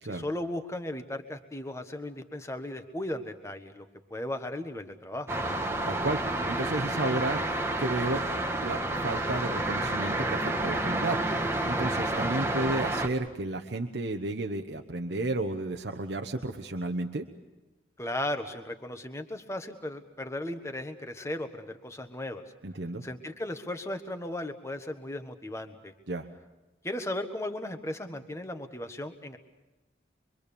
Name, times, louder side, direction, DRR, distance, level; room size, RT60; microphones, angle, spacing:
voice 1, 0.0-5.3 18.0-22.4 23.0-25.9 26.8-29.4, left 1 dB, 15° left, 7 dB, 1.4 m, -36 dB
sound 1, 5.3-13.1, right 1 dB, 15° right, 1.4 m, -29 dB
voice 2, 5.9-7.4 7.8-8.2 8.5-11.2 11.6-17.2 22.6-23.0 26.1-26.3, right 2 dB, 75° right, 3 dB, 1.1 m, -32 dB
25.5 x 24.0 x 7.0 m, 1.1 s
head